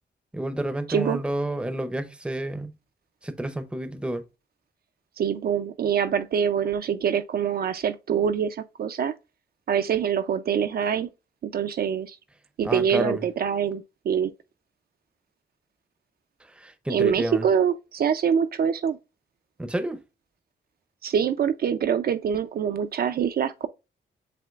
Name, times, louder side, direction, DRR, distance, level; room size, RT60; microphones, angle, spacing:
voice 1, 0.3-2.7 3.2-4.2 12.6-13.2 16.5-17.5 19.6-20.0, right 1 dB, 5° right, 0.5 m, -29 dB
voice 2, 0.9-1.2 5.2-9.1 9.7-11.1 11.4-12.2 12.6-14.3 16.9-19.0 21.0-23.7, right 8 dB, 55° right, 0.4 m, -25 dB
7.5 x 2.9 x 2.3 m
wide cardioid pair, 155°, 19 cm